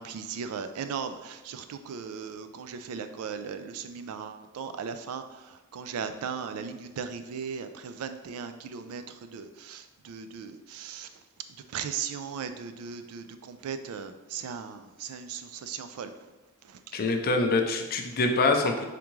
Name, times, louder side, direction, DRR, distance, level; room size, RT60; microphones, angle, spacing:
voice 1, 0.0-5.2 5.7-9.0 9.3-11.1 11.7-16.1, right 6 dB, 70° right, 9 dB, 0.3 m, -37 dB
voice 2, 16.9-18.8, left 3 dB, 45° left, 4 dB, 0.4 m, -25 dB
3.6 x 3.5 x 3.0 m, 1.1 s
head